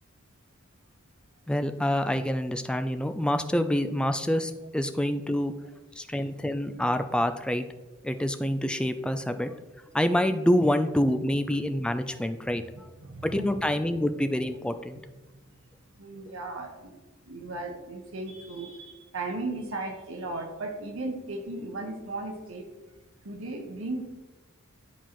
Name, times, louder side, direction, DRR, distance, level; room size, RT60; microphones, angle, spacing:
voice 1, 1.5-5.5 6.0-7.6 8.0-9.5 9.9-12.6 13.2-15.0, equal, 5° left, 9 dB, 0.3 m, -27 dB
voice 2, 13.0-13.6 16.0-16.9 17.3-22.7 23.2-24.1, right 2 dB, 70° right, 3 dB, 1.1 m, -36 dB
10.0 x 4.3 x 3.0 m, 1.1 s
head